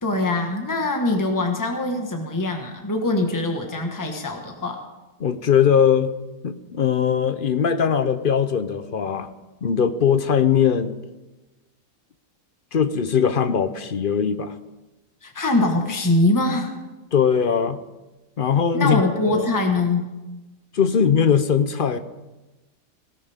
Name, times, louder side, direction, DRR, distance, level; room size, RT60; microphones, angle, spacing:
voice 1, 0.0-4.8 15.2-16.7 18.7-20.1, left 2 dB, 15° left, 3 dB, 1.5 m, -23 dB
voice 2, 5.2-6.1 6.4-9.3 9.6-11.0 12.7-14.5 17.1-17.8 18.4-19.0 19.3-19.5 20.7-22.0, left 7 dB, 50° left, 11 dB, 0.8 m, -20 dB
18.0 x 17.5 x 3.6 m, 1.1 s
omnidirectional pair, 1.5 m